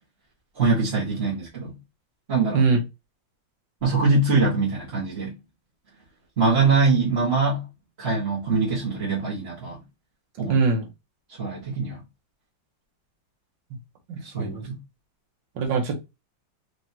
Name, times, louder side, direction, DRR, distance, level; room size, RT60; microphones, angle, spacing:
voice 1, 0.6-1.8 2.3-2.6 3.8-5.4 6.4-7.6 8.0-9.8 10.4-10.6 11.4-12.0 14.2-14.8, right 3 dB, 35° right, 1.7 m, -23 dB
voice 2, 10.5-10.9 14.1-14.6 15.5-16.0, right 4 dB, 70° right, 1.8 m, -22 dB
5.0 x 3.0 x 2.8 m
omnidirectional pair, 2.1 m